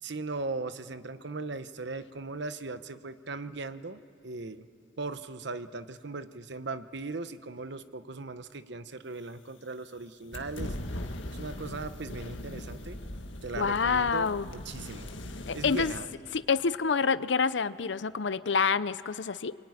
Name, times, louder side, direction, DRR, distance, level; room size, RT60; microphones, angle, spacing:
voice 1, 0.0-4.7 5.0-10.7 11.3-13.1 13.4-15.1 15.5-16.1, right 3 dB, 65° right, 11 dB, 1.0 m, -38 dB
sound 1, 10.3-16.0, left 1 dB, 85° left, 1.7 m, -40 dB
voice 2, 13.6-14.5 15.5-15.9 16.3-19.6, left 5 dB, 65° left, 16 dB, 0.6 m, -27 dB
27.0 x 23.0 x 9.7 m, 2.2 s
head